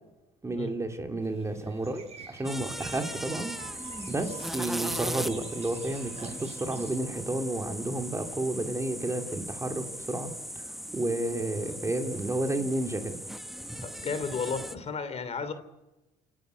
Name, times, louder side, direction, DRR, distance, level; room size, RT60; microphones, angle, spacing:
voice 1, 0.4-3.7 4.1-10.3 10.9-13.2, right 2 dB, 15° right, 4 dB, 2.8 m, -31 dB
sound 1, 1.2-7.0, right 4 dB, 40° right, 7.2 m, -50 dB
sound 2, 2.4-14.7, equal, ahead, 0.9 m, -38 dB
sound 3, 3.0-10.4, right 6 dB, 70° right, 5.6 m, -53 dB
voice 2, 13.8-15.5, left 5 dB, 40° left, 11 dB, 3.0 m, -33 dB
28.5 x 11.0 x 9.3 m, 1.0 s
cardioid pair, 110°, 17 cm